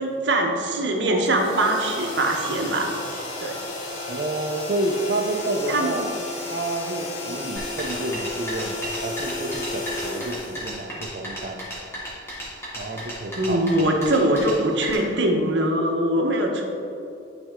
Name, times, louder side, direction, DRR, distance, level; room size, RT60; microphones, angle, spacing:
voice 1, 0.0-2.9 3.4-3.6 5.7-6.0 12.9-13.0 13.4-16.7, right 1 dB, 65° right, 1 dB, 1.0 m, -22 dB
sound 1, 1.3-11.2, left 2 dB, 90° left, 1.3 m, -33 dB
voice 2, 4.1-6.1 6.5-11.7 12.8-13.6, right 2 dB, 50° right, -2 dB, 0.6 m, -29 dB
sound 2, 7.6-14.9, equal, 15° left, 1.8 m, -35 dB
11.5 x 4.3 x 3.7 m, 2.8 s
head